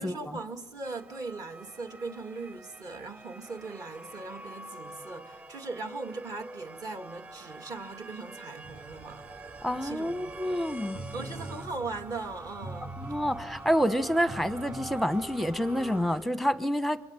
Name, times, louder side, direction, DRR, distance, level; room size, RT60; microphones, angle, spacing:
voice 1, 0.0-9.3 9.7-12.9, right 3 dB, 40° right, 2.2 m, -39 dB
sound 1, 0.8-16.0, right 2 dB, 20° right, 4.1 m, -45 dB
sound 2, 8.6-16.3, right 2 dB, 60° right, 4.1 m, -45 dB
voice 2, 9.6-11.0 13.0-17.1, equal, ahead, 1.0 m, -28 dB
27.0 x 23.5 x 9.0 m
cardioid pair, 120°, 10 cm